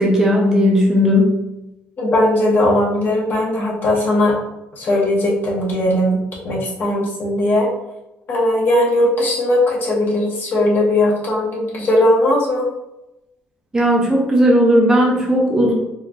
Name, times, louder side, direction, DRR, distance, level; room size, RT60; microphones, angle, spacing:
voice 1, 0.0-1.3 13.7-15.7, equal, 15° right, -2 dB, 0.7 m, -15 dB
voice 2, 2.0-4.4 4.8-7.7 8.3-12.7, left 1 dB, 45° left, -4 dB, 1.3 m, -18 dB
4.4 x 2.9 x 2.5 m, 0.92 s
cardioid pair, 130°, 5 cm